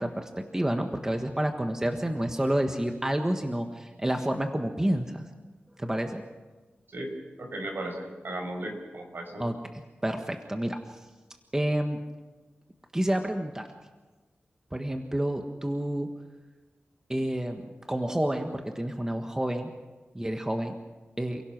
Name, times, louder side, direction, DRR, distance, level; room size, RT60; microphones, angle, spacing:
voice 1, 0.0-5.3 5.8-6.2 9.4-11.1 11.5-12.0 12.9-13.7 14.7-16.1 17.1-19.7 20.1-20.8 21.2-21.4, right 1 dB, 15° right, 5 dB, 1.6 m, -29 dB
voice 2, 7.4-9.4, right 1 dB, 65° right, 3 dB, 5.6 m, -36 dB
29.0 x 17.0 x 6.1 m, 1.2 s
wide cardioid pair, 75°, 4 cm